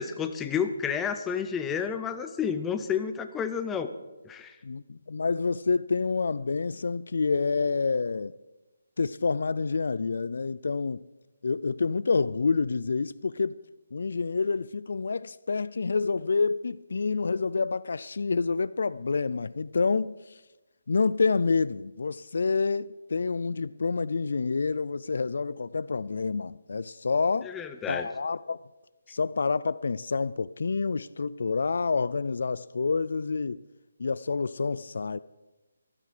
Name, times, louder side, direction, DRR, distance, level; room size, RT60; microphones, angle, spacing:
voice 1, 0.0-3.9 4.3-4.6 27.4-28.1, left 7 dB, 10° left, 0.6 m, -30 dB
voice 2, 4.6-8.3 9.0-11.0 11.4-13.6 13.9-20.1 20.9-27.5 27.9-28.6 29.1-33.6 34.0-35.2, left 4 dB, 60° left, 0.3 m, -28 dB
13.0 x 12.5 x 5.0 m
hypercardioid pair, 170°, 0 cm